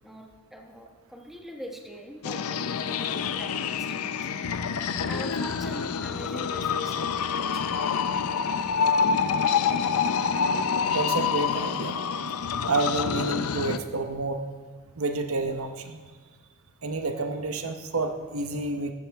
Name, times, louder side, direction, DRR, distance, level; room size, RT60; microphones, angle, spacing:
voice 1, 0.0-4.3 5.1-7.8, equal, ahead, 1 dB, 1.2 m, -42 dB
sound 1, 2.2-13.8, left 6 dB, 75° left, 0.5 m, -27 dB
voice 2, 10.9-12.0 12.7-14.4 15.0-16.0 16.8-18.9, right 3 dB, 65° right, 6 dB, 0.9 m, -29 dB
14.5 x 12.5 x 3.5 m, 1.5 s
head